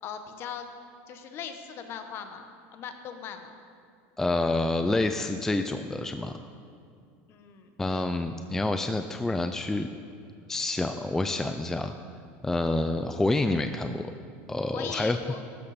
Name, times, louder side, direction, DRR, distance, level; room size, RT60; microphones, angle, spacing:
voice 1, 0.0-0.7 1.1-3.6 7.3-8.0 14.7-15.4, left 7 dB, 40° left, 7 dB, 1.2 m, -39 dB
voice 2, 4.2-6.4 7.8-9.9 10.5-11.9 12.4-14.1 14.5-15.2, left 2 dB, 5° left, 7 dB, 0.4 m, -28 dB
14.5 x 13.0 x 4.3 m, 2.3 s
supercardioid pair, 145°, 6 cm